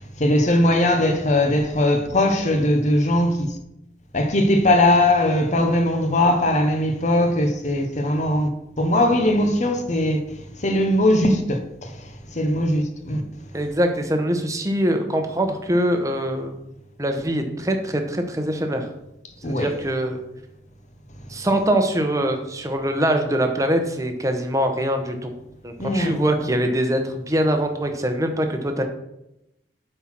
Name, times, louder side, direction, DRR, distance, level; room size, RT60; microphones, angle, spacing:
voice 1, 0.2-3.6 4.1-8.5 8.8-10.2 10.6-13.2 19.4-19.9 25.8-26.2, left 1 dB, 40° left, 1.0 m, -20 dB
voice 2, 13.5-16.5 17.0-18.9 19.5-20.2 21.3-25.3 25.6-28.8, right 1 dB, 20° right, 0.9 m, -23 dB
8.1 x 4.5 x 5.9 m
head